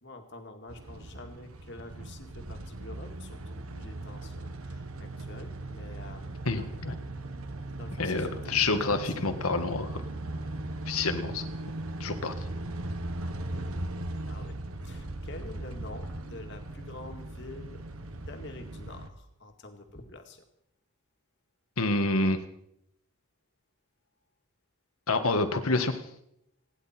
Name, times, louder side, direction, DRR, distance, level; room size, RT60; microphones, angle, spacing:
voice 1, 0.0-6.7 7.8-9.3 10.2-10.7 11.6-11.7 13.2-13.7 14.2-14.6 14.8-17.8 18.2-20.4, left 2 dB, 55° left, 5 dB, 2.1 m, -47 dB
sound 1, 0.7-19.1, right 1 dB, 80° right, 1.3 m, -38 dB
voice 2, 6.4-6.9 8.0-10.0 10.9-11.5 12.0-12.3 21.8-22.4 25.1-26.0, left 3 dB, 85° left, 8 dB, 1.7 m, -28 dB
29.5 x 10.5 x 4.4 m, 0.76 s
head